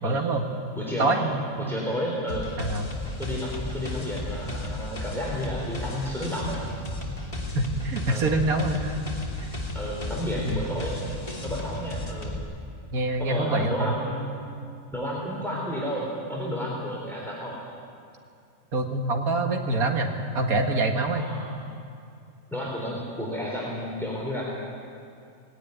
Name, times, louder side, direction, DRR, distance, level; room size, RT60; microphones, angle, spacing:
voice 1, 0.0-0.4 1.0-1.5 2.6-2.9 7.5-9.0 10.4-10.6 12.9-13.9 18.7-21.3, right 2 dB, 85° right, 3 dB, 2.3 m, -25 dB
voice 2, 0.7-1.2 1.6-2.5 3.2-6.6 8.1-8.3 9.7-11.0 11.4-12.3 13.2-14.3 14.9-17.6 21.1-21.5 22.5-24.4, equal, ahead, -4 dB, 3.8 m, -31 dB
sound 1, 2.3-12.4, left 1 dB, 25° left, 2.7 m, -34 dB
19.5 x 18.0 x 9.4 m, 2.5 s
omnidirectional pair, 1.5 m